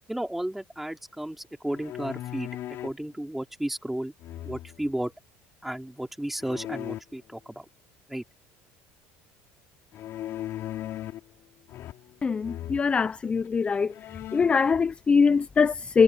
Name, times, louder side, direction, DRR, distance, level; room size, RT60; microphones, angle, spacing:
voice 1, 0.1-2.5 2.8-4.1 4.4-5.1 5.6-7.6 8.1-8.2, right 1 dB, 5° right, 3.3 m, -33 dB
sound 1, 1.7-3.0 4.2-4.9 6.4-7.0 9.9-11.3 11.7-12.2 12.4-12.8 13.5-13.6 13.9-14.6, left 13 dB, 55° left, 5.2 m, -37 dB
voice 2, 12.2-13.9 14.3-16.0, left 5 dB, 20° left, 0.6 m, -22 dB
cardioid pair, 120°, 5 cm